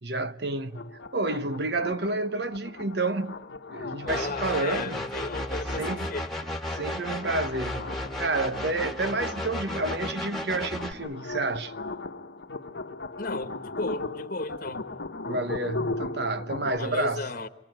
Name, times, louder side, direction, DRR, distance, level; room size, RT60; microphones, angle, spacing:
voice 1, 0.0-3.4 3.7-5.0 5.8-6.1 6.7-11.7 15.3-17.3, right 2 dB, 60° right, 1.0 m, -30 dB
sound 1, 0.7-16.8, left 3 dB, 65° left, 1.2 m, -38 dB
voice 2, 4.0-6.3 13.2-14.9 16.8-17.5, left 3 dB, 45° left, 1.3 m, -34 dB
sound 2, 4.1-10.9, left 1 dB, ahead, 2.0 m, -34 dB
27.5 x 23.0 x 9.1 m
head